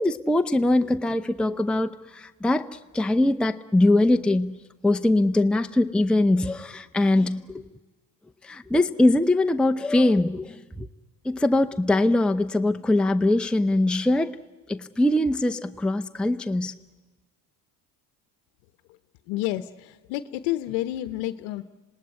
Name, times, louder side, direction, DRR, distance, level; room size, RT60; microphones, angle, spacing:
voice 1, 0.0-4.5 4.8-7.6 8.4-10.9 11.2-14.4 14.7-16.7, left 2 dB, ahead, 0.8 m, -22 dB
voice 2, 19.3-21.6, left 15 dB, 75° left, 1.0 m, -29 dB
27.0 x 19.0 x 9.8 m
hypercardioid pair, 70°, 48 cm